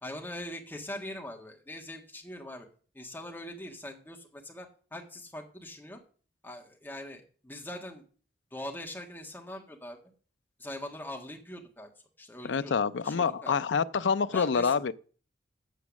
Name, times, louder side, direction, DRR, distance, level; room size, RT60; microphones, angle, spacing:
voice 1, 0.0-2.7 2.9-6.0 6.4-8.0 8.5-10.0 10.6-11.9 12.2-12.7 13.0-13.6 14.3-14.8, left 1 dB, 10° left, 1.7 m, -42 dB
voice 2, 12.4-14.9, left 5 dB, 80° left, 0.5 m, -27 dB
8.4 x 7.1 x 7.1 m
head